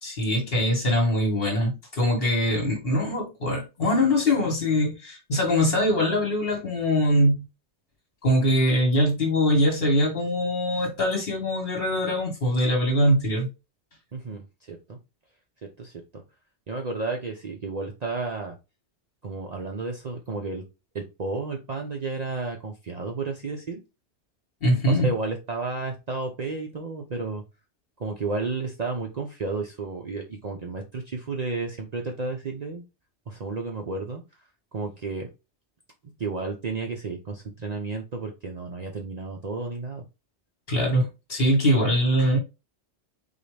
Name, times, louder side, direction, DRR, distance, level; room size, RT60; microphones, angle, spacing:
voice 1, 0.0-7.4 8.2-13.5 24.6-25.1 40.7-42.4, equal, 55° left, 0 dB, 1.8 m, -23 dB
voice 2, 14.1-15.0 15.6-16.0 16.7-18.6 19.2-20.6 20.9-23.8 24.8-27.4 28.0-32.8 33.3-34.2 34.7-35.3 36.2-40.0, right 3 dB, 45° right, 2 dB, 0.6 m, -32 dB
4.0 x 3.0 x 3.2 m, 0.27 s
omnidirectional pair, 1.2 m